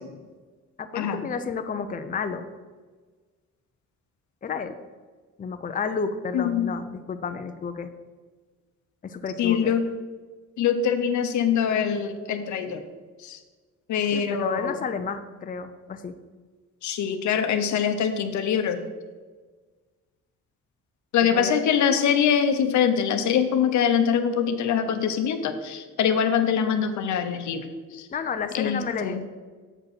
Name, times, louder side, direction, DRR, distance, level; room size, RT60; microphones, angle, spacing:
voice 1, 0.8-2.4 4.4-4.8 5.4-7.9 9.0-9.8 14.1-16.2 21.2-21.5 28.1-29.3, left 5 dB, 30° left, 8 dB, 0.6 m, -31 dB
voice 2, 6.3-6.7 9.4-9.9 10.6-12.8 13.2-13.4 13.9-14.8 16.8-18.8 21.1-28.1 28.5-29.2, left 7 dB, 75° left, 8 dB, 0.9 m, -24 dB
7.5 x 5.2 x 6.0 m, 1.4 s
cardioid pair, 90°, 30 cm